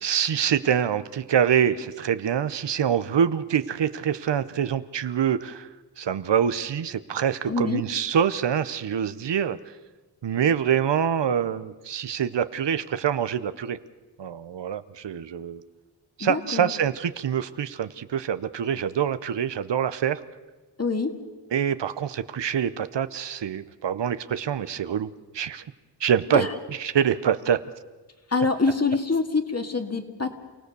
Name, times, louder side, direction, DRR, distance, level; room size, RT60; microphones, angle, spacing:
voice 1, 0.0-5.7 6.0-9.6 10.2-13.8 14.2-15.6 16.2-20.2 21.5-25.6 26.0-26.5 26.8-27.6, right 8 dB, 85° right, 13 dB, 0.9 m, -25 dB
voice 2, 7.5-7.8 16.2-16.7 20.8-21.2 26.3-26.5 28.3-30.4, left 4 dB, 35° left, 5 dB, 2.2 m, -25 dB
28.5 x 17.0 x 6.8 m, 1.2 s
cardioid pair, 65°, 42 cm